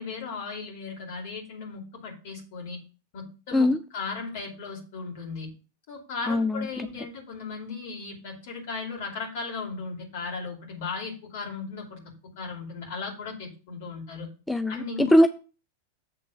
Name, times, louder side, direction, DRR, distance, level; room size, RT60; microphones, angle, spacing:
voice 1, 0.0-2.8 3.1-5.5 5.9-12.0 12.4-14.3 14.7-15.1, left 4 dB, 50° left, 2.6 m, -36 dB
voice 2, 6.3-6.7 14.5-15.3, left 1 dB, 5° left, 0.4 m, -21 dB
7.7 x 3.7 x 6.6 m
figure-of-eight pair, 90°, 0 cm